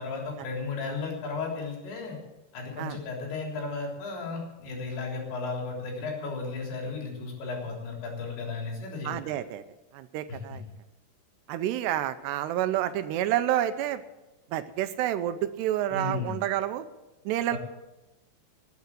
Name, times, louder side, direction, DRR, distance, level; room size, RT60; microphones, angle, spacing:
voice 1, 0.0-2.2 2.5-9.3 10.3-10.6 15.9-16.3 17.5-17.6, left 4 dB, 80° left, -1 dB, 5.9 m, -34 dB
voice 2, 9.1-9.6 9.9-10.6 11.5-14.0 14.5-16.9 17.3-17.6, right 12 dB, 80° right, 11 dB, 2.7 m, -29 dB
19.0 x 9.4 x 7.4 m, 1.0 s
omnidirectional pair, 5.0 m